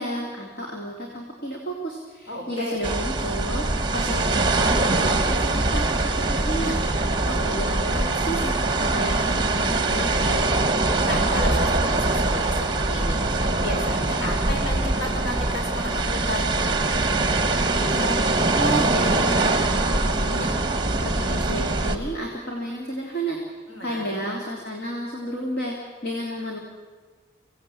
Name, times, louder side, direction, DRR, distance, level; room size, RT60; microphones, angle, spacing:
voice 1, 0.0-10.5 17.9-20.5 21.0-23.4 23.8-25.7 26.0-26.6, equal, 50° left, -1 dB, 3.2 m, -32 dB
voice 2, 2.3-2.8 11.0-13.2 13.6-16.5 23.7-24.2, left 1 dB, 85° left, 1 dB, 5.6 m, -32 dB
sound 1, 2.8-22.0, right 2 dB, 25° right, 1.4 m, -23 dB
25.5 x 17.5 x 8.6 m, 1.5 s
head